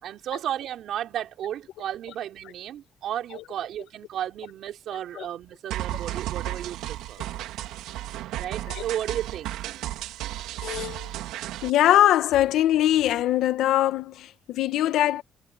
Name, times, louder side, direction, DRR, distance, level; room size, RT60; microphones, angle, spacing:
voice 1, 0.0-7.2 8.4-9.7, right 11 dB, 65° right, 4.5 m, -33 dB
sound 1, 5.7-11.7, right 14 dB, 90° right, 2.8 m, -34 dB
voice 2, 10.6-11.1 11.6-15.2, left 13 dB, 75° left, 1.9 m, -22 dB
cardioid pair, 125°, 0 cm